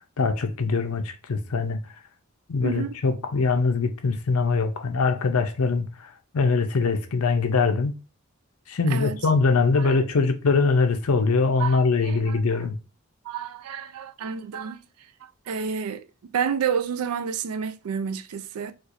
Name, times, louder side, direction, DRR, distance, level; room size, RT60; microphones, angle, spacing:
voice 1, 0.0-1.8 2.5-7.9 8.7-12.8, left 4 dB, 80° left, 0.6 m, -23 dB
voice 2, 2.6-3.0 8.9-9.2 9.8-9.9 11.6-12.7 13.2-14.8 15.2-18.7, right 7 dB, 85° right, 0.4 m, -30 dB
4.4 x 2.4 x 2.5 m
head